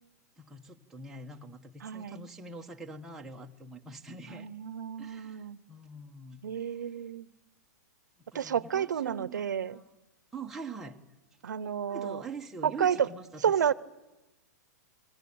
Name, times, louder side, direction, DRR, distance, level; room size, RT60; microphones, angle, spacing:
voice 1, 0.4-4.5 5.0-7.0 8.2-9.8 10.3-11.0 11.9-13.7, right 3 dB, 5° right, 0 dB, 1.4 m, -44 dB
voice 2, 1.8-2.2 4.3-5.6 6.4-7.3 8.3-9.8 11.4-12.2 12.6-13.1 13.4-13.7, right 8 dB, 90° right, 19 dB, 0.9 m, -30 dB
29.0 x 21.5 x 8.8 m, 1.1 s
hypercardioid pair, 150°, 9 cm